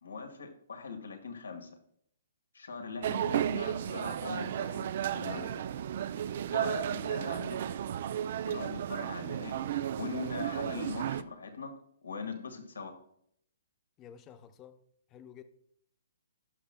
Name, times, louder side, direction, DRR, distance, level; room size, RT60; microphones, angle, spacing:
voice 1, 0.0-1.7 2.5-5.6 6.5-7.7 8.4-9.6 9.9-11.7 12.0-12.9, left 5 dB, 90° left, 1.6 m, -41 dB
sound 1, 3.0-11.2, right 10 dB, 55° right, 0.4 m, -33 dB
voice 2, 14.0-14.8 15.1-15.4, left 9 dB, 25° left, 0.7 m, -51 dB
16.5 x 6.0 x 2.2 m
hypercardioid pair, 140°, 0 cm